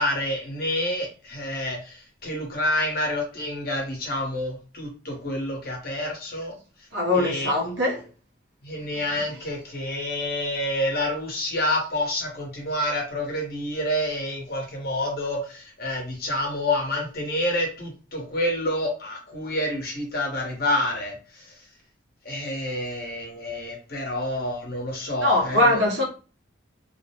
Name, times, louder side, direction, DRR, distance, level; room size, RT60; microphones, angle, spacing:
voice 1, 0.0-6.6 7.1-7.5 8.6-21.7 22.2-25.8, left 1 dB, 50° left, 0.9 m, -28 dB
voice 2, 6.9-8.0 9.2-9.3 25.2-26.0, left 1 dB, 65° right, 0.8 m, -22 dB
2.5 x 2.0 x 2.8 m
head